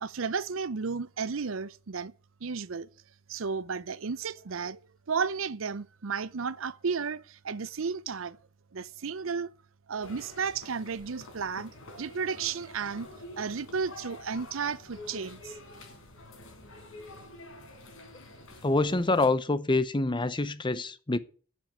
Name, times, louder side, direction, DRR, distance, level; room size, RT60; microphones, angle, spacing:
voice 1, 0.0-2.1 2.4-2.9 3.3-4.8 5.1-8.4 8.7-9.5 9.9-11.7 12.0-13.1 13.4-15.5, right 5 dB, 80° right, 0.7 m, -33 dB
sound 1, 10.0-19.3, left 1 dB, 80° left, 4.3 m, -48 dB
voice 2, 18.6-21.2, left 2 dB, 25° left, 0.8 m, -26 dB
10.0 x 7.6 x 9.2 m
head